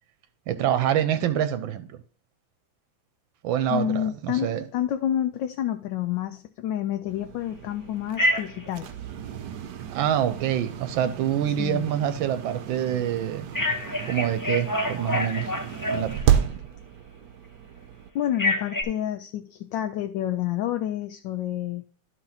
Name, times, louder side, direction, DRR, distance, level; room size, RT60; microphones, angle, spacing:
voice 1, 0.5-2.0 3.4-4.6 9.9-13.5 14.0-15.5 15.9-16.5, right 10 dB, 85° right, 1.4 m, -26 dB
voice 2, 3.7-8.9 11.6-11.9 18.1-21.8, left 11 dB, 75° left, 1.2 m, -29 dB
sound 1, 7.1-18.1, right 9 dB, 70° right, 1.2 m, -32 dB
Telephone, 8.2-8.7 13.5-16.4 18.3-18.8, left 1 dB, 30° left, 0.3 m, -27 dB
11.5 x 4.4 x 3.9 m
omnidirectional pair, 2.1 m